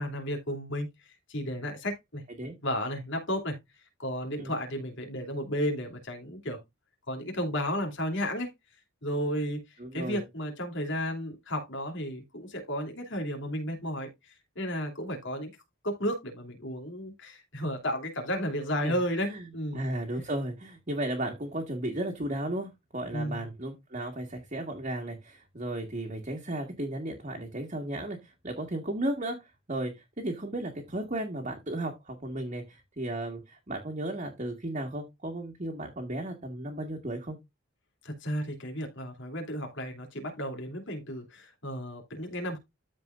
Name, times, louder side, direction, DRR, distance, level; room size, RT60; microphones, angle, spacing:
voice 1, 0.0-2.2 2.6-3.6 4.0-6.6 7.1-8.5 9.0-9.6 9.9-15.5 15.8-19.8 23.1-23.5 38.0-42.6, equal, 60° left, 3.0 m, -33 dB
voice 2, 9.8-10.2 18.8-19.0 19.3-19.4 19.7-28.2 28.4-29.4 29.7-37.4, right 1 dB, 35° right, 1.8 m, -34 dB
13.5 x 4.7 x 2.5 m
head